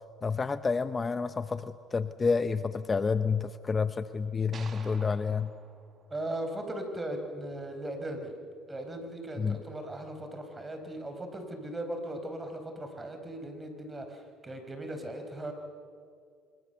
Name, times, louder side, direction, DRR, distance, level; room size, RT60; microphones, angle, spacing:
voice 1, 0.2-5.5 9.4-9.6, left 5 dB, 30° left, 12 dB, 0.8 m, -29 dB
sound 1, 4.5-6.9, right 6 dB, 45° right, 1.6 m, -51 dB
voice 2, 6.1-8.3 8.7-15.5, right 1 dB, 20° right, 6 dB, 4.8 m, -38 dB
25.5 x 22.5 x 6.9 m, 2.2 s
supercardioid pair, 80°, 0 cm